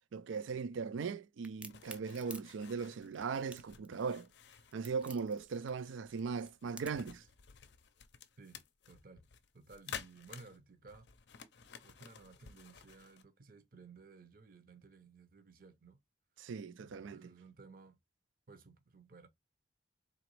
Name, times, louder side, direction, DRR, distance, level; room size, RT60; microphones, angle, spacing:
voice 1, 0.1-4.3 4.7-7.2 16.4-17.2, right 5 dB, 85° right, 0.4 m, -39 dB
Crack, 1.4-7.1, right 2 dB, 5° right, 0.3 m, -52 dB
sound 1, 1.7-13.2, left 7 dB, 65° left, 0.5 m, -53 dB
voice 2, 8.9-9.2 9.5-11.1 11.8-16.0 16.8-18.0 18.5-19.3, right 4 dB, 45° right, 0.6 m, -57 dB
3.9 x 2.9 x 3.0 m
head